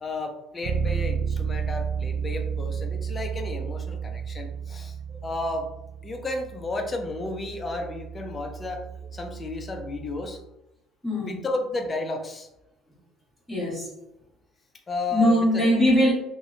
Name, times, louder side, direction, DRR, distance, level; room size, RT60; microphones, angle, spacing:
voice 1, 0.0-5.0 5.2-5.7 6.0-8.9 9.1-10.4 11.2-12.5 14.9-15.8, left 2 dB, 25° left, 4 dB, 0.4 m, -32 dB
Bass guitar, 0.6-10.4, right 6 dB, 75° right, 0.3 m, -32 dB
voice 2, 11.0-11.4 13.5-13.9 15.1-16.1, equal, 5° right, -7 dB, 1.3 m, -21 dB
2.7 x 2.1 x 2.4 m, 0.89 s
cardioid pair, 120°, 0 cm